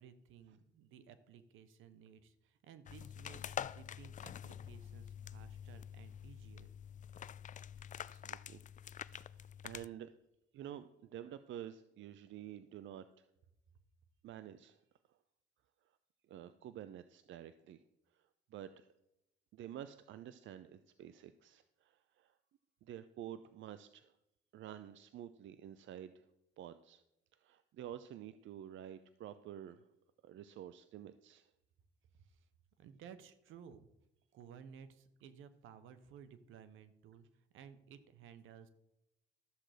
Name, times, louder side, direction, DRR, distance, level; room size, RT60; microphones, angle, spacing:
voice 1, 0.0-6.7 32.1-32.5 32.8-33.9 34.3-38.7, right 7 dB, 90° right, 12 dB, 1.1 m, -57 dB
sound 1, 2.9-9.9, left 9 dB, 40° left, 0.4 m, -47 dB
voice 2, 8.1-8.6 9.2-10.1 10.5-13.2 14.2-14.8 16.3-17.8 18.5-18.9 19.5-22.3 22.8-24.1 24.5-26.2 26.6-27.0 27.4-29.9 30.2-31.5, right 10 dB, 70° right, 12 dB, 0.6 m, -50 dB
13.0 x 7.6 x 5.0 m, 0.85 s
cardioid pair, 90°, 20 cm